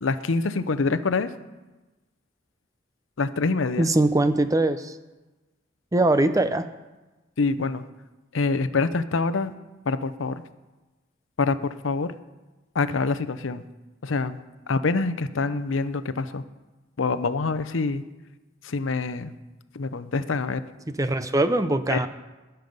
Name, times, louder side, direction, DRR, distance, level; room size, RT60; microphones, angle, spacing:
voice 1, 0.0-1.3 3.2-3.9 7.4-7.8 8.3-9.5 9.8-10.4 11.4-12.1 12.7-13.6 14.0-14.4 14.7-16.4 17.0-18.0 18.6-19.3 19.7-20.6 21.9-22.1, left 4 dB, 75° left, 13 dB, 0.7 m, -25 dB
voice 2, 3.8-4.9 5.9-6.7 21.0-22.1, right 2 dB, 15° right, 11 dB, 0.5 m, -21 dB
19.5 x 6.9 x 5.4 m, 1.1 s
head